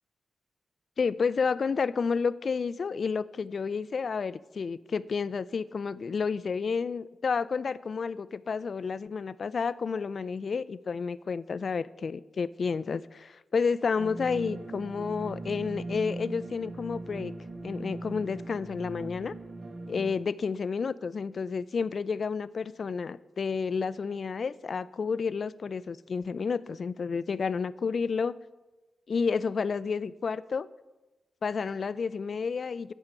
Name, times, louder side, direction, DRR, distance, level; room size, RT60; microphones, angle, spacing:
voice 1, 1.0-17.3 17.6-19.3 19.9-28.4 29.1-30.7 31.4-32.9, left 5 dB, 60° left, 17 dB, 0.4 m, -30 dB
sound 1, 14.0-20.1, right 2 dB, 65° right, 1.3 m, -39 dB
8.9 x 5.6 x 7.7 m, 1.1 s
cardioid pair, 45°, 0 cm